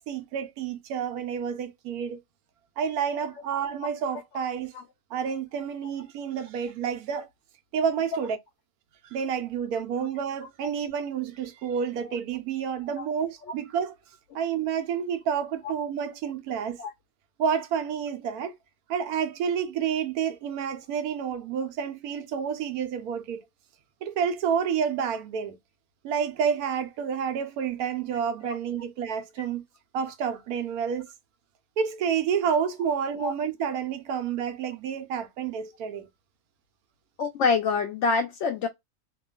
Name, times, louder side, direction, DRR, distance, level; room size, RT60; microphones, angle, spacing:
voice 1, 0.0-2.2 2.8-4.7 5.1-7.3 7.7-8.4 9.1-14.0 14.3-16.8 17.4-18.6 18.9-23.4 24.0-25.6 26.0-29.6 29.9-31.1 31.8-36.1, right 7 dB, 90° right, 1.1 m, -29 dB
voice 2, 37.2-38.7, left 4 dB, 65° left, 0.8 m, -25 dB
2.9 x 2.3 x 2.3 m
omnidirectional pair, 1.5 m